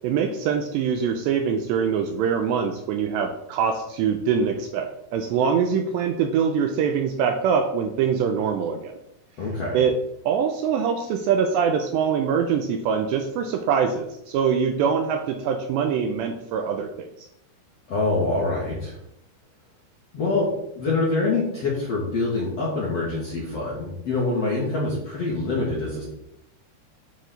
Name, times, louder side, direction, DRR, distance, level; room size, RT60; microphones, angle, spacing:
voice 1, 0.0-8.9 9.7-10.0 10.3-17.3, right 7 dB, 80° right, 5 dB, 2.6 m, -24 dB
voice 2, 9.4-9.8 17.9-19.0 20.1-20.5 20.8-26.0, left 3 dB, 55° left, -5 dB, 1.8 m, -25 dB
9.4 x 6.4 x 3.9 m, 0.81 s
omnidirectional pair, 5.5 m